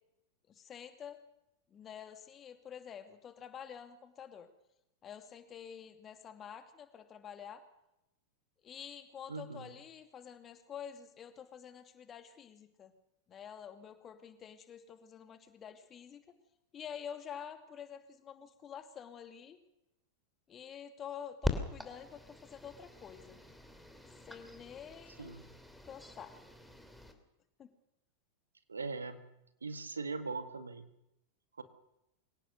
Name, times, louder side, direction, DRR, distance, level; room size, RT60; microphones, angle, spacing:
voice 1, 0.5-1.2 1.7-4.5 5.0-7.6 8.6-12.9 13.3-16.2 16.7-19.6 20.5-23.4 24.3-25.4 25.9-26.4 27.6-27.7, left 8 dB, 25° left, 8 dB, 2.5 m, -48 dB
voice 2, 9.3-9.7 25.2-25.5 28.7-29.2 29.6-30.9 31.6-31.7, right 4 dB, 75° right, 10 dB, 2.0 m, -40 dB
sound 1, 21.4-27.1, left 1 dB, ahead, 3.0 m, -42 dB
24.5 x 17.5 x 6.7 m, 0.86 s
figure-of-eight pair, 90°, 0 cm